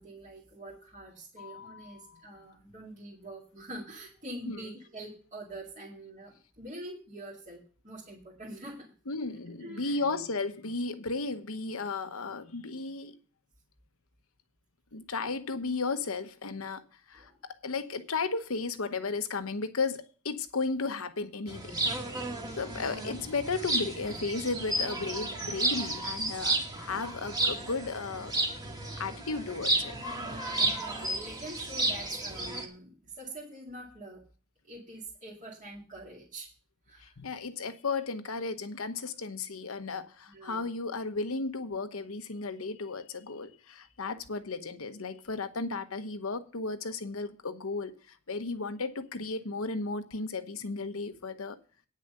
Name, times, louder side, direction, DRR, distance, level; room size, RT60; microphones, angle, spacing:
voice 1, 0.0-8.9 9.6-10.0 17.1-17.4 22.3-22.8 24.1-24.2 30.2-34.2 34.6-36.5 36.9-37.2 40.3-40.6, right 1 dB, 35° right, 2.3 m, -45 dB
voice 2, 1.4-2.2 4.5-4.6 9.1-13.1 14.9-16.8 17.1-21.8 22.6-28.3 29.0-30.0 37.0-51.6, left 3 dB, 75° left, 1.0 m, -34 dB
sound 1, 21.5-32.6, right 2 dB, 20° right, 1.8 m, -32 dB
9.5 x 6.5 x 6.7 m
head